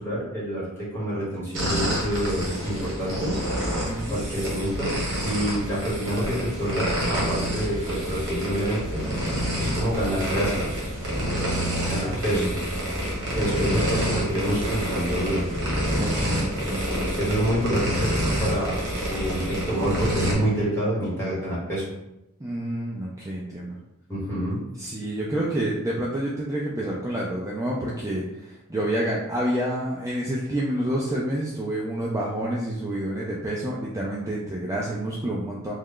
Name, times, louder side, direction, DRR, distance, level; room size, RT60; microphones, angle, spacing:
voice 1, 0.0-3.4 4.1-4.9 5.2-9.0 9.6-10.7 11.8-12.5 13.3-15.4 17.1-18.8 19.1-21.8 24.1-24.6, right 1 dB, 10° left, -8 dB, 1.4 m, -27 dB
sound 1, 1.5-20.3, equal, 60° right, 1.2 m, -28 dB
voice 2, 3.8-4.2 12.3-12.5 13.7-13.8 16.0-17.2 22.4-23.8 24.8-35.7, right 1 dB, 15° right, -5 dB, 0.4 m, -28 dB
3.1 x 2.3 x 3.7 m, 0.91 s
head